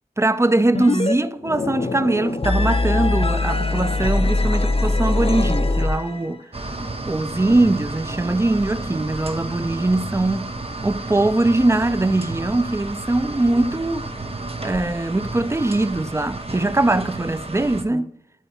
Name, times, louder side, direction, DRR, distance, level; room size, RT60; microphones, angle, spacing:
voice 1, 0.2-6.4 7.1-10.5 10.8-14.0 14.6-18.1, right 2 dB, 15° right, 0.5 m, -21 dB
sound 1, 0.7-1.1 1.4-6.4, left 2 dB, 35° left, 0.6 m, -22 dB
gas boiler stand by, 6.5-17.8, right 2 dB, 40° right, 1.1 m, -31 dB
12.5 x 4.5 x 2.9 m
wide cardioid pair, 50°, 16 cm